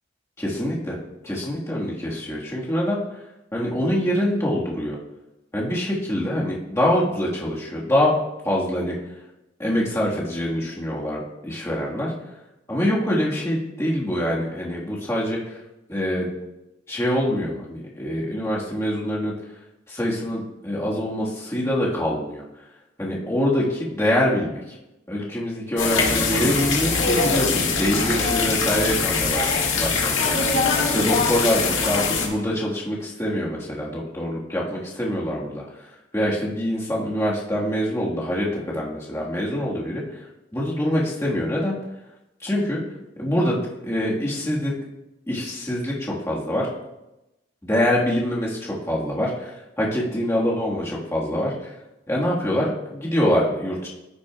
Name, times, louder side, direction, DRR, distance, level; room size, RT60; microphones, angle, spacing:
voice 1, 0.4-1.0 1.2-3.0 3.5-5.0 5.5-8.2 8.4-8.9 9.6-12.1 12.7-15.4 15.9-16.3 16.9-19.3 19.9-22.4 23.0-24.6 25.1-30.6 30.9-35.6 36.1-40.0 40.5-41.7 42.4-42.8 43.2-44.7 45.3-46.7 47.6-51.7 52.1-53.9, equal, 15° left, -5 dB, 1.6 m, -25 dB
sound 1, 25.8-32.3, left 4 dB, 80° left, 1.7 m, -22 dB
15.5 x 6.4 x 2.3 m, 0.95 s
head